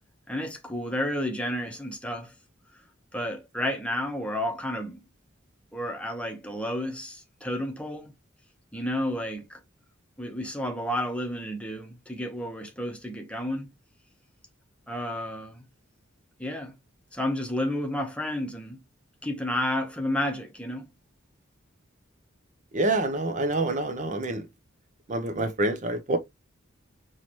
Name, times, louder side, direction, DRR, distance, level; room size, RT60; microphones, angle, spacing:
voice 1, 0.3-2.3 3.1-5.0 5.7-8.1 8.7-9.6 10.2-13.7 14.9-15.6 16.4-16.8 17.1-18.8 19.2-20.9, left 1 dB, 5° left, 0.9 m, -31 dB
voice 2, 22.7-24.4 25.1-26.2, right 2 dB, 40° right, 0.7 m, -27 dB
5.7 x 3.1 x 3.0 m
head